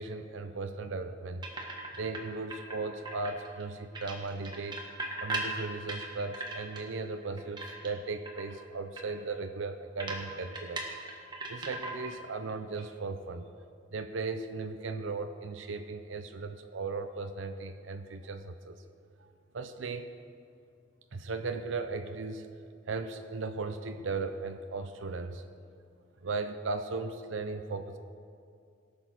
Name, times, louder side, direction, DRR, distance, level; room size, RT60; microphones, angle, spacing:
voice 1, 0.0-1.5 1.9-4.9 5.2-13.5 13.9-18.8 19.2-19.3 19.5-20.1 21.1-22.6 22.9-25.4 26.2-28.0, right 3 dB, 85° right, 8 dB, 0.6 m, -37 dB
sound 1, 1.4-2.2 2.5-3.6 3.9-6.9 7.2-8.0 8.2-8.5 9.0-9.1 9.3-9.4 10.0-12.2 12.5-12.8, right 2 dB, 25° right, 1.5 m, -38 dB
18.5 x 7.0 x 5.9 m, 2.4 s
head